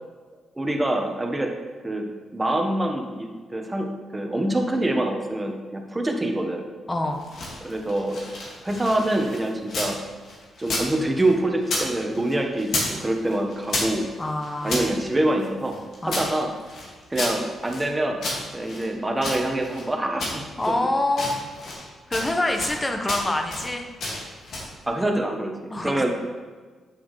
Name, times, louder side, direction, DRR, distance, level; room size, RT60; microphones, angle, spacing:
voice 1, 0.5-1.5 1.8-6.6 7.6-8.2 8.6-10.0 10.6-14.1 14.6-15.8 16.0-16.5 17.1-18.2 18.5-20.7 24.9-26.1, right 1 dB, 20° right, 3 dB, 1.2 m, -25 dB
voice 2, 6.9-7.2 14.2-14.9 16.0-16.2 20.6-21.4 22.1-23.9 25.7-26.1, left 2 dB, 20° left, 4 dB, 1.0 m, -26 dB
sound 1, 7.1-10.0 10.2-11.9 12.1-13.0 13.2-14.9 15.4-17.9 18.2-19.9 20.2-20.8 21.1-21.9 22.1-22.8 23.1-23.7 24.0-24.7, left 2 dB, 70° left, 2.0 m, -31 dB
8.6 x 6.2 x 3.2 m, 1.4 s
cardioid pair, 65°, 0 cm